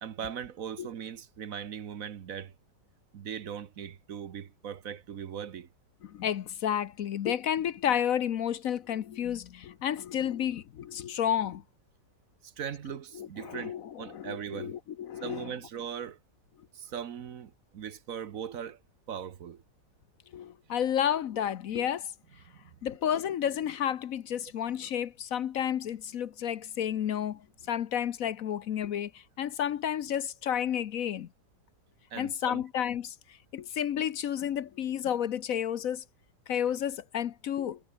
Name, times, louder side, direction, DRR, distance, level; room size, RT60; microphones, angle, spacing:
voice 1, 0.0-2.5 3.1-5.7 12.4-14.7 15.2-16.2 16.7-18.8 19.1-19.6 22.5-22.8 32.1-32.6, right 8 dB, 55° right, 1.3 m, -39 dB
voice 2, 6.0-11.6 13.1-15.5 20.3-22.1 22.8-27.4 27.7-31.3 32.2-33.1 33.5-36.0 36.5-37.8, left 9 dB, 60° left, 1.1 m, -31 dB
omnidirectional pair, 1.9 m